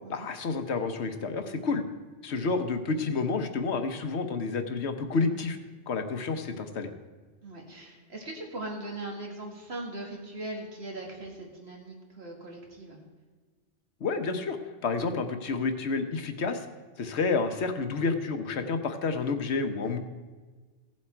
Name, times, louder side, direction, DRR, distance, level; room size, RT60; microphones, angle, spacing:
voice 1, 0.1-1.8 2.2-5.6 5.9-6.9 14.0-14.6 14.8-16.7 17.0-20.0, left 4 dB, 70° left, 7 dB, 1.1 m, -29 dB
voice 2, 7.4-13.0, right 2 dB, 60° right, 0 dB, 2.3 m, -40 dB
16.0 x 7.5 x 4.5 m, 1.4 s
omnidirectional pair, 1.2 m